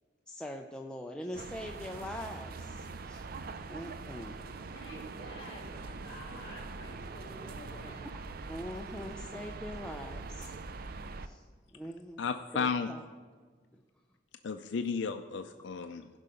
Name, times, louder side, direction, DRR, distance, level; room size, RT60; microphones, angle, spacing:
voice 1, 0.3-3.3 3.7-4.4 8.5-10.5 11.2-11.4 11.7-12.2 12.5-13.0, equal, 5° left, 2 dB, 0.4 m, -42 dB
sound 1, 1.3-11.3, right 3 dB, 55° right, 0.5 m, -43 dB
voice 2, 4.5-8.0, left 1 dB, 30° left, -5 dB, 3.4 m, -50 dB
voice 3, 12.2-12.9 14.4-16.1, left 5 dB, 70° left, 8 dB, 0.4 m, -33 dB
15.5 x 5.6 x 5.0 m, 1.5 s
head